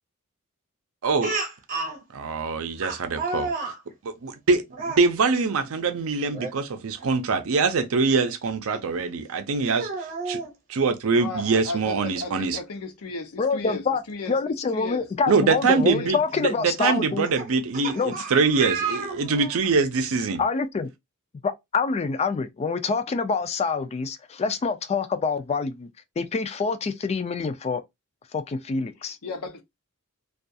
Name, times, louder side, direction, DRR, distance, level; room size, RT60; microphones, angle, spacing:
voice 1, 1.0-1.3 2.1-3.5 4.0-9.9 10.3-10.4 10.7-12.6 15.3-20.4, right 4 dB, 65° right, 0.5 m, -24 dB
Speech, 1.2-2.0 2.8-3.8 4.7-5.0 6.3-6.5 7.0-7.1 8.7-8.8 9.6-10.5 11.8-11.9 12.3-12.4 14.2-14.3 15.0-15.2 16.3-19.6, right 3 dB, 40° right, 0.8 m, -32 dB
voice 2, 11.1-15.0 15.8-16.1 29.0-29.6, left 3 dB, 85° left, 0.6 m, -35 dB
voice 3, 13.4-14.0 14.3-17.3 17.9-18.1 20.4-20.9 21.4-25.9 26.2-27.8 28.3-29.2, left 4 dB, 30° left, 0.3 m, -26 dB
2.3 x 2.3 x 2.6 m
head